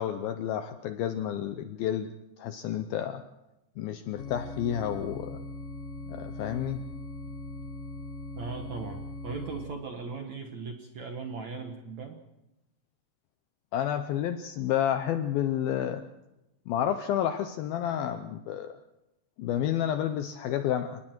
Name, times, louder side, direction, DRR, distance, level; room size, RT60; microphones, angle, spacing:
voice 1, 0.0-2.1 2.4-3.2 3.8-5.5 6.1-6.8 13.7-16.0 16.7-18.8 19.4-21.0, left 10 dB, 75° left, 9 dB, 2.2 m, -30 dB
sound 1, 4.2-9.7, left 2 dB, 55° left, 1.7 m, -40 dB
voice 2, 8.4-12.2, right 4 dB, 60° right, 4 dB, 2.0 m, -38 dB
30.0 x 19.0 x 4.5 m, 0.92 s
omnidirectional pair, 5.1 m